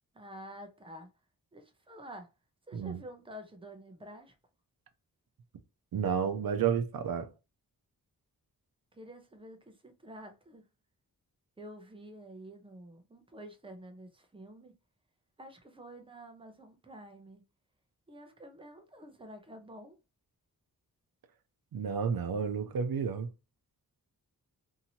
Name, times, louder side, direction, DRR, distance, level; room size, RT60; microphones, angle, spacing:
voice 1, 0.1-1.1 1.5-2.3 2.7-4.4 8.9-10.7 11.6-14.8 15.4-17.4 18.1-20.0, right 1 dB, 15° right, 0.6 m, -49 dB
voice 2, 5.9-7.3 21.7-23.3, right 7 dB, 70° right, 0.7 m, -31 dB
2.8 x 2.7 x 2.7 m
wide cardioid pair, 150°, 37 cm